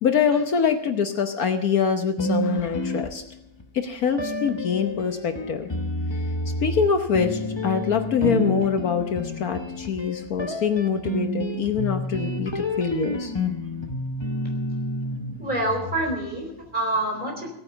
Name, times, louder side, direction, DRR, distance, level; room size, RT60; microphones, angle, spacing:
voice 1, 0.0-3.2 3.7-5.7 6.6-13.3, left 6 dB, 65° left, 6 dB, 1.4 m, -24 dB
sound 1, 2.2-3.6 4.2-16.4, left 1 dB, 25° left, 0.7 m, -29 dB
voice 2, 15.4-17.5, right 1 dB, 25° right, 1 dB, 4.4 m, -27 dB
17.0 x 9.6 x 6.9 m, 0.81 s
omnidirectional pair, 1.7 m